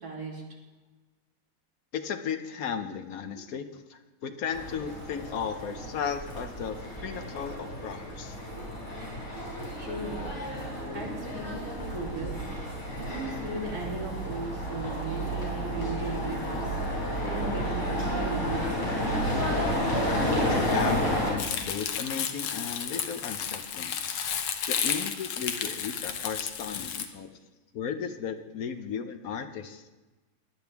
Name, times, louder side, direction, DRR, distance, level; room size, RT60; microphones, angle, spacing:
voice 1, 0.0-0.4 8.6-8.7 9.8-10.3 10.9-12.3 12.9-19.6, right 2 dB, 50° right, -4 dB, 3.5 m, -37 dB
voice 2, 1.9-8.4 20.5-24.0 24.7-27.4 27.7-29.9, left 7 dB, 60° left, 7 dB, 1.0 m, -35 dB
sound 1, 4.5-21.3, equal, 30° left, 4.2 m, -31 dB
Crumpling crinkling, 21.4-27.1, left 8 dB, 90° left, 1.8 m, -32 dB
18.5 x 10.5 x 3.5 m, 1.2 s
omnidirectional pair, 2.2 m